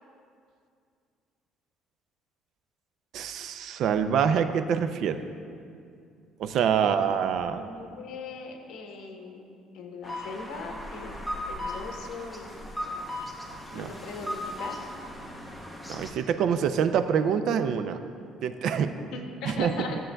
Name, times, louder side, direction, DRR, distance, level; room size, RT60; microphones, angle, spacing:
voice 1, 3.1-5.2 6.4-7.7 13.7-13.9 15.9-18.0 18.4-18.9 19.5-19.7, right 7 dB, 55° right, 9 dB, 0.4 m, -26 dB
voice 2, 6.8-7.1 7.5-11.1 11.5-12.7 13.7-14.8 19.1-20.0, left 4 dB, 65° left, 2 dB, 1.1 m, -40 dB
sound 1, 10.0-16.1, left 1 dB, ahead, 0.7 m, -37 dB
14.0 x 7.5 x 2.3 m, 2.4 s
cardioid pair, 155°, 0 cm